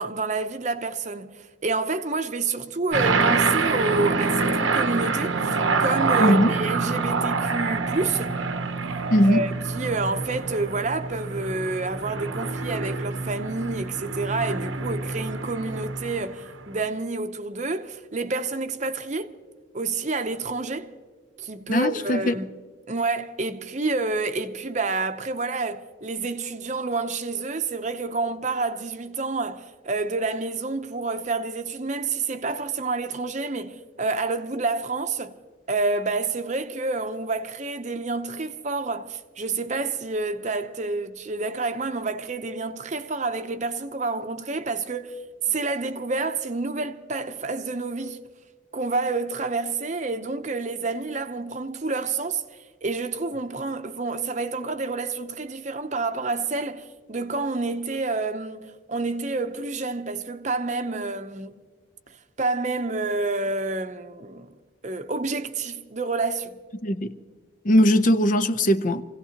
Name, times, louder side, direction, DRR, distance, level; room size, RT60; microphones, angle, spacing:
voice 1, 0.0-8.4 9.3-19.3 19.7-20.9 21.4-22.5 22.9-35.4 35.7-45.2 45.5-48.2 48.7-52.4 52.8-61.6 62.4-64.5 64.8-66.6, right 3 dB, 35° right, 0.7 m, -28 dB
sound 1, 2.9-16.6, right 4 dB, 85° right, 1.0 m, -26 dB
voice 2, 6.2-6.5 9.1-9.4 21.7-22.3 66.8-67.2 67.6-69.0, equal, 40° left, 0.6 m, -19 dB
27.0 x 16.5 x 2.9 m
head